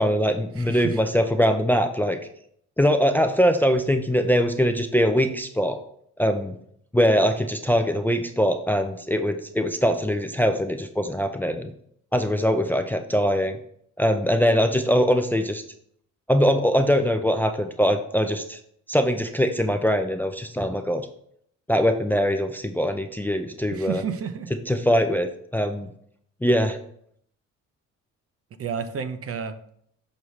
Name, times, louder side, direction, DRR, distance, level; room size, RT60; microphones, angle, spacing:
voice 1, 0.0-2.2 2.8-5.8 6.2-6.6 6.9-11.7 12.1-13.6 14.0-15.6 16.3-18.6 18.9-21.1 21.7-24.0 24.7-25.9 26.4-26.8, equal, 5° left, 7 dB, 0.4 m, -22 dB
voice 2, 0.6-1.0 23.7-24.5 28.6-29.6, right 6 dB, 50° right, 10 dB, 0.7 m, -31 dB
6.3 x 5.4 x 3.2 m, 0.68 s
cardioid pair, 90°, 30 cm